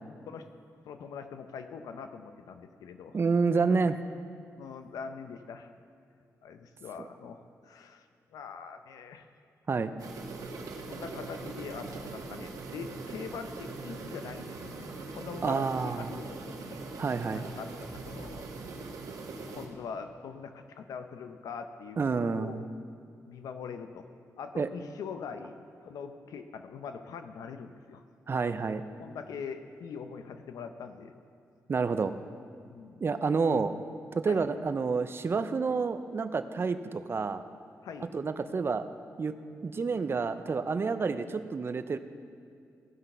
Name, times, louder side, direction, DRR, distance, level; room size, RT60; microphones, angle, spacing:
voice 1, 0.8-3.2 3.7-3.8 4.6-5.7 6.4-9.3 10.9-16.9 17.3-18.5 19.5-22.7 23.3-24.1 24.4-28.0 29.0-31.1 32.6-33.0 34.2-34.5 37.8-38.1, left 6 dB, 90° left, 8 dB, 0.6 m, -43 dB
voice 2, 3.1-3.9 9.7-9.9 15.4-16.1 17.0-17.5 22.0-22.6 24.6-24.7 28.3-28.8 31.7-32.1 33.0-33.7 34.1-37.4 38.1-38.9 39.2-39.3 39.6-42.0, right 4 dB, 40° right, 11 dB, 0.6 m, -29 dB
sound 1, 10.0-19.7, right 3 dB, 75° right, 1.3 m, -41 dB
15.5 x 6.0 x 5.5 m, 2.4 s
cardioid pair, 85°, 6 cm